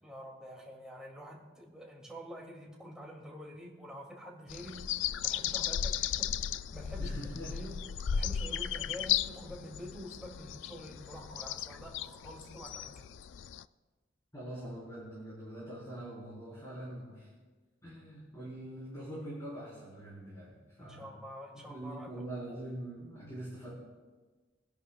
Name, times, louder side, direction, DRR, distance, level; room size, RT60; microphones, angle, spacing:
voice 1, 0.0-4.9 5.2-6.4 6.7-7.8 8.1-13.1 20.8-22.2, equal, 5° right, -2 dB, 2.4 m, -47 dB
sound 1, 4.5-13.6, left 9 dB, 70° left, 0.3 m, -35 dB
voice 2, 7.0-7.5 14.3-17.3 17.8-21.1 21.5-23.7, right 1 dB, 20° left, -7 dB, 4.0 m, -43 dB
24.0 x 11.0 x 2.3 m, 1.3 s
head